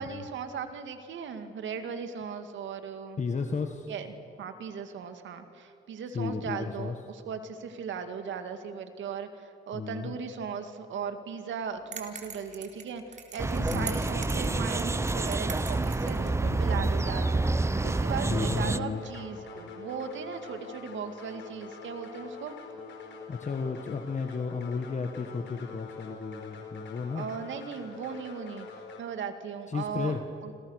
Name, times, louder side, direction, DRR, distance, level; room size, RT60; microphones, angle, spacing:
voice 1, 0.0-3.2 3.9-4.1 4.4-22.6 27.2-28.7 29.0-30.5, right 6 dB, 70° right, 8 dB, 2.3 m, -37 dB
voice 2, 3.2-3.9 6.1-7.0 9.7-10.1 13.6-14.0 16.4-17.0 18.3-19.0 23.3-27.3 29.7-30.2, left 5 dB, 35° left, 5 dB, 1.7 m, -33 dB
sound 1, 11.9-16.3, right 6 dB, 40° right, 4.0 m, -42 dB
sound 2, 13.4-18.8, right 2 dB, 15° right, 0.8 m, -28 dB
sound 3, 15.3-29.0, left 4 dB, 65° left, 4.6 m, -46 dB
28.5 x 26.5 x 6.6 m, 2.5 s
cardioid pair, 90°, 20 cm